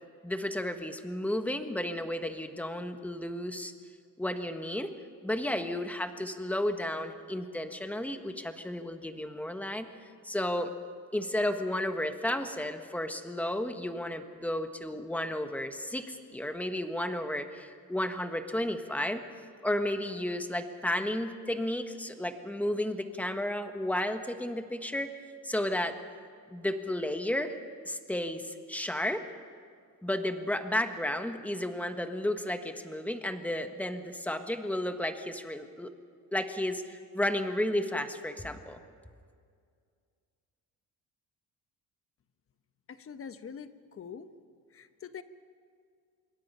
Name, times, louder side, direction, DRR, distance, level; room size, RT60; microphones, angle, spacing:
voice 1, 0.2-3.7 4.2-4.9 5.2-10.7 11.1-19.2 19.6-25.1 25.4-25.9 26.5-27.6 27.8-29.3 30.0-35.9 36.3-38.8, left 1 dB, 5° left, 7 dB, 1.4 m, -33 dB
voice 2, 42.9-44.3 44.7-45.2, left 7 dB, 40° left, 11 dB, 1.1 m, -44 dB
26.5 x 22.5 x 5.6 m, 2.2 s
cardioid pair, 135°, 34 cm